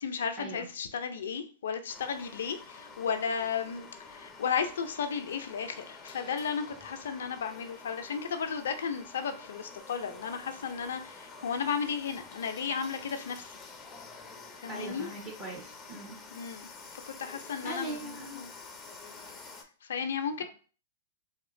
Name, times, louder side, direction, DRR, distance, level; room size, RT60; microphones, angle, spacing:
voice 1, 0.0-13.6 14.6-15.1 16.3-18.5 19.8-20.4, left 6 dB, 75° left, 0.4 m, -34 dB
sound 1, 1.9-19.6, left 4 dB, 20° left, 0.5 m, -49 dB
voice 2, 14.7-16.2 17.6-18.4, right 2 dB, 35° right, 1.2 m, -40 dB
2.9 x 2.8 x 2.5 m
hypercardioid pair, 120°, 0 cm